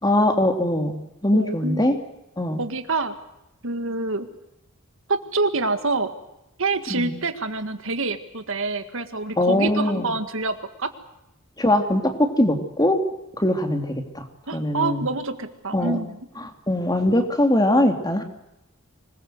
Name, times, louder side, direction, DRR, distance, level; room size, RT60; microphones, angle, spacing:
voice 1, 0.0-2.0 2.4-2.6 6.9-7.2 9.4-10.1 11.6-13.0 13.4-14.2 14.5-15.0 15.7-16.0 16.4-18.2, left 1 dB, 20° left, 5 dB, 3.1 m, -21 dB
voice 2, 1.3-1.8 2.6-3.1 3.6-4.3 5.1-6.1 6.6-10.9 14.5-16.2, right 3 dB, 65° right, 9 dB, 1.9 m, -26 dB
26.0 x 20.5 x 7.9 m, 0.88 s
head